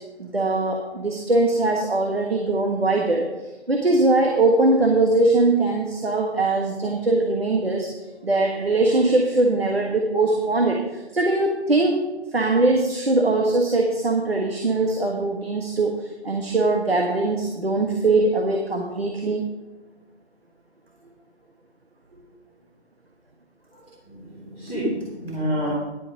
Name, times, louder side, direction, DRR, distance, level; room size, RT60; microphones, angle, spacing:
voice 1, 0.2-7.9 8.2-12.0 12.3-19.4, right 2 dB, 60° right, 2 dB, 1.4 m, -21 dB
voice 2, 24.1-25.7, equal, 5° right, -15 dB, 1.7 m, -28 dB
10.5 x 8.1 x 5.1 m, 1.1 s
figure-of-eight pair, 165°, 34 cm